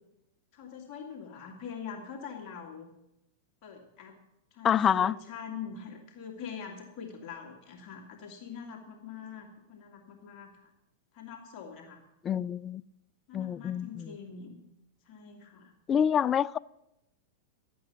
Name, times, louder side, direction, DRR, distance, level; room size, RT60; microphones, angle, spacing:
voice 1, 0.5-2.9 3.6-4.2 4.5-10.7 11.1-12.0 13.3-14.6 15.1-15.7, left 7 dB, 45° left, 1 dB, 2.5 m, -44 dB
voice 2, 4.6-5.1 12.2-12.8 13.3-14.1 15.9-16.6, left 8 dB, 25° left, 22 dB, 0.3 m, -26 dB
12.5 x 8.6 x 7.0 m, 0.88 s
hypercardioid pair, 105°, 0 cm